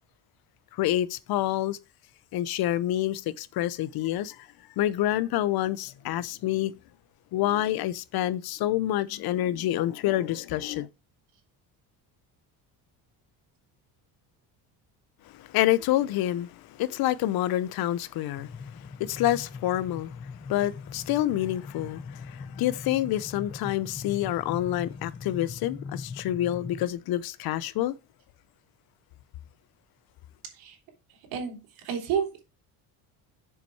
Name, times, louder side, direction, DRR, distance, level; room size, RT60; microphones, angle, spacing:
voice 1, 0.7-1.8 2.3-4.5 4.8-6.7 7.3-10.9 15.3-18.5 19.0-20.1 20.5-27.9, left 13 dB, 65° left, 0.7 m, -27 dB
sound 1, 18.4-26.9, left 5 dB, 15° left, 0.7 m, -41 dB
voice 2, 31.8-32.4, right 7 dB, 85° right, 3.7 m, -30 dB
7.4 x 5.4 x 4.6 m
cardioid pair, 110°, 40 cm